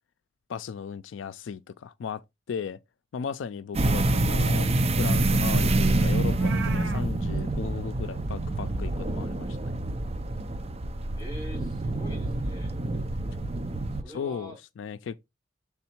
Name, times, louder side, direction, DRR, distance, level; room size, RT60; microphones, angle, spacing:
voice 1, 0.5-2.8 3.1-4.7 4.9-9.7 14.1-15.2, left 6 dB, 85° left, 0.4 m, -36 dB
voice 2, 3.7-4.1 11.2-12.8 14.0-14.6, equal, 20° left, 4.6 m, -44 dB
sound 1, 3.7-14.0, right 2 dB, 35° right, 0.5 m, -26 dB
Meow, 6.2-7.0, right 6 dB, 85° right, 1.0 m, -38 dB
7.0 x 3.5 x 4.4 m
head